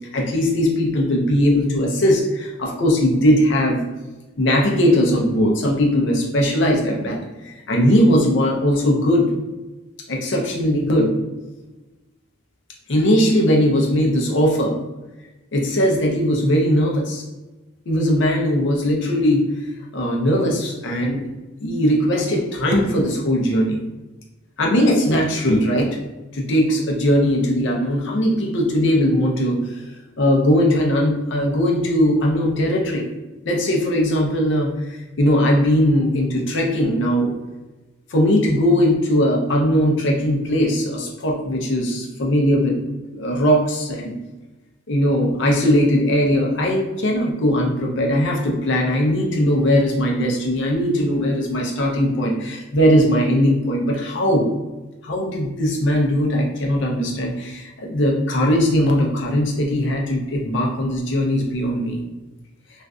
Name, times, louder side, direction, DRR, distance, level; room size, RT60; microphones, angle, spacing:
voice 1, 0.1-3.8 4.4-7.2 7.4-9.3 10.1-11.1 12.9-14.8 15.5-17.2 17.9-19.4 19.9-21.3 21.6-23.8 24.6-25.9 26.3-29.8 30.2-33.1 33.5-37.3 38.1-42.8 43.1-44.2 44.9-54.5 55.0-62.0, equal, 60° left, -1 dB, 0.6 m, -19 dB
2.5 x 2.3 x 2.3 m, 1.1 s
head